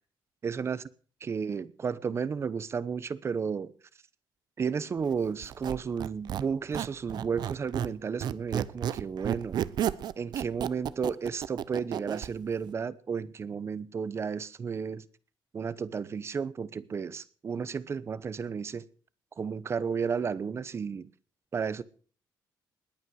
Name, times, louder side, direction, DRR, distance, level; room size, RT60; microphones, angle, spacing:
voice 1, 0.4-0.8 1.2-3.7 4.6-9.6 10.2-15.0 15.5-18.8 19.4-21.1 21.5-21.8, right 6 dB, 35° right, 0.9 m, -33 dB
Squeak, 5.4-12.3, right 10 dB, 60° right, 0.8 m, -32 dB
20.5 x 8.9 x 6.4 m
cardioid pair, 140°, 8 cm